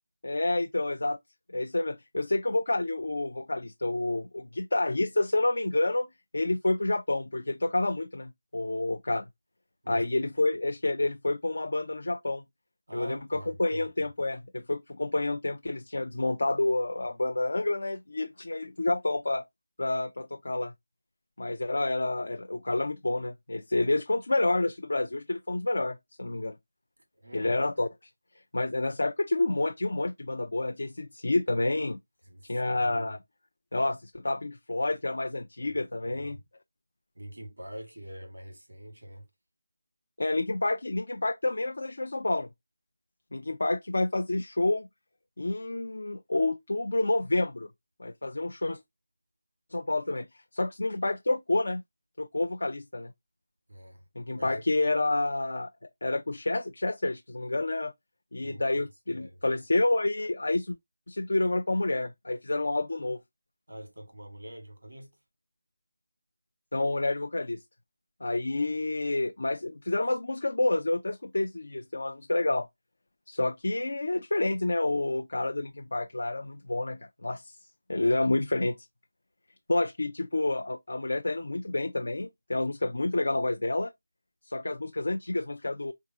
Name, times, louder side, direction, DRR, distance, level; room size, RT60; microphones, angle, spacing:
voice 1, 0.2-1.2 1.5-6.1 6.3-9.2 9.9-12.4 12.9-19.4 19.8-20.7 21.4-26.6 27.3-27.9 28.5-32.0 32.4-33.2 33.7-36.4 40.2-42.5 43.3-44.9 45.4-47.7 48.0-48.8 49.7-50.3 50.5-51.8 52.2-53.1 54.2-55.7 56.0-57.9 58.3-60.8 61.1-63.2 66.7-67.6 68.2-72.7 73.3-77.6 77.9-78.9 79.7-83.9 84.5-85.9, left 2 dB, 70° left, 0.4 m, -29 dB
voice 2, 12.9-13.9 27.2-27.5 32.3-33.1 36.0-36.4 37.2-39.2 53.7-54.6 58.4-58.6 59.1-59.4 63.7-65.1, equal, 85° right, 1.8 m, -44 dB
3.6 x 3.4 x 2.7 m
figure-of-eight pair, 165°, 0 cm